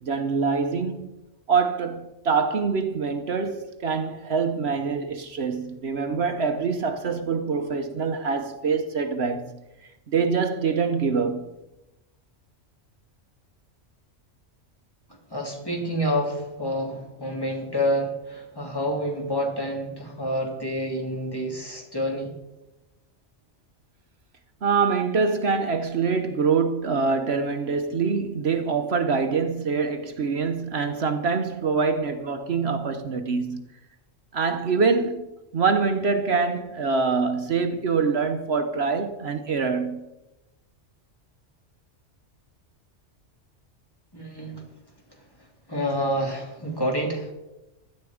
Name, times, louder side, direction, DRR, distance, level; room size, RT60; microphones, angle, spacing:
voice 1, 0.0-1.1 1.5-9.6 10.1-11.4 24.6-33.6 34.3-35.2 35.5-40.1, right 5 dB, 60° right, 1.1 m, -25 dB
voice 2, 15.3-22.3 44.1-44.7 45.7-47.3, equal, 20° left, 3.0 m, -28 dB
16.5 x 12.5 x 4.9 m
omnidirectional pair, 1.2 m